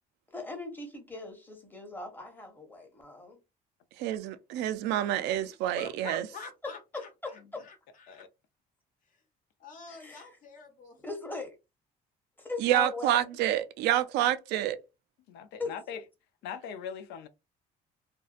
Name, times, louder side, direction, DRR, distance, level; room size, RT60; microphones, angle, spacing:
voice 1, 0.3-3.4 5.3-5.4 7.2-7.3 9.9-10.3 11.0-11.6 12.4-13.2 15.6-15.8, left 2 dB, 10° left, 0.9 m, -39 dB
voice 2, 4.0-6.2 12.6-14.8, right 12 dB, 85° right, 0.4 m, -28 dB
voice 3, 5.4-8.2 9.6-11.0, left 4 dB, 50° left, 1.0 m, -47 dB
voice 4, 15.3-16.0 16.4-17.3, left 7 dB, 80° left, 0.4 m, -40 dB
2.6 x 2.2 x 2.4 m
cardioid pair, 110°, 17 cm